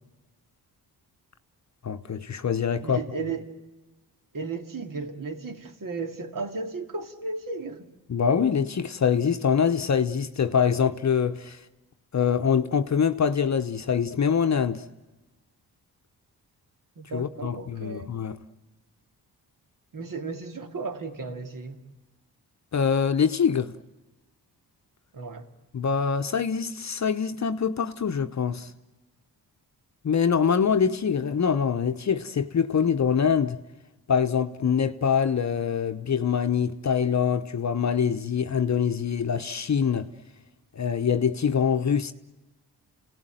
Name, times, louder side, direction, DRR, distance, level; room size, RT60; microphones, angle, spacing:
voice 1, 1.8-3.0 8.1-11.6 12.1-14.8 17.1-18.4 22.7-23.7 25.7-28.7 30.0-33.6 34.1-40.1 40.7-42.1, left 7 dB, 45° left, 0.9 m, -24 dB
voice 2, 2.8-3.4 4.3-7.9 17.0-18.1 19.9-21.8 25.1-25.5, right 4 dB, 50° right, 2.4 m, -34 dB
28.0 x 18.0 x 9.1 m
cardioid pair, 80°, 40 cm